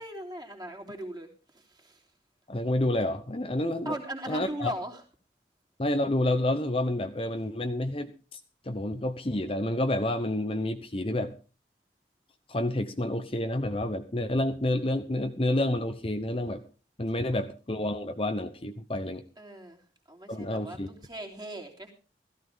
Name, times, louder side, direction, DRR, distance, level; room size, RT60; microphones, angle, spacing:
voice 1, 0.0-2.0 3.9-5.0 19.4-19.8 20.1-21.9, right 1 dB, 25° right, 1 dB, 3.4 m, -39 dB
voice 2, 2.5-3.9 4.3-4.7 5.8-11.3 12.5-16.6 17.0-19.2 20.3-20.9, left 1 dB, 30° left, 7 dB, 1.0 m, -29 dB
16.0 x 14.5 x 3.7 m, 0.36 s
head